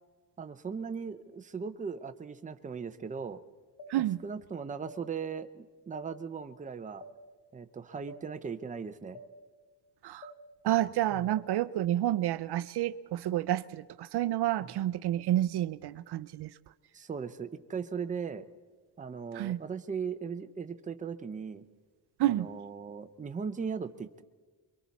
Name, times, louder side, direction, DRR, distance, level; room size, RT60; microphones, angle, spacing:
voice 1, 0.4-3.4 4.0-7.0 7.5-9.2 11.1-11.3 14.6-14.7 16.9-18.5 19.0-21.6 22.2-24.2, right 6 dB, 20° right, 8 dB, 0.6 m, -38 dB
sound 1, 3.8-3.9 4.9-5.0 5.9-6.1 7.0-7.2 8.1-8.2 9.1-9.3 10.2-10.4 11.3-11.4, left 1 dB, 60° left, 1.2 m, -47 dB
voice 2, 10.6-16.5 19.3-19.6 22.2-22.5, right 13 dB, 65° right, 15 dB, 0.5 m, -29 dB
28.5 x 23.0 x 4.1 m, 1.4 s
wide cardioid pair, 160°, 43 cm